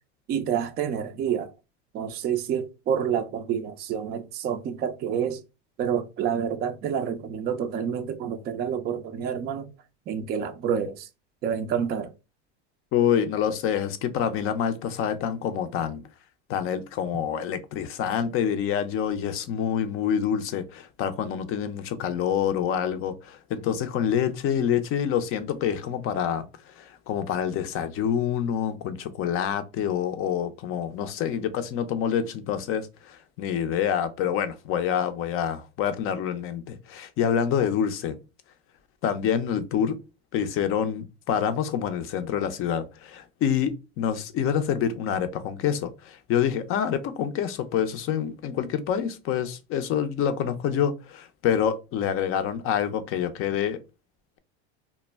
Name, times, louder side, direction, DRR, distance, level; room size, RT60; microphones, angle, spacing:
voice 1, 0.3-1.5 1.9-5.4 5.8-9.7 10.1-11.1 11.4-12.1, right 8 dB, 30° right, 0.4 m, -28 dB
voice 2, 12.9-16.0 16.5-26.5 26.8-38.2 39.0-40.0 40.3-53.8, left 8 dB, 40° left, 0.5 m, -27 dB
2.1 x 2.1 x 3.3 m
supercardioid pair, 110°, 34 cm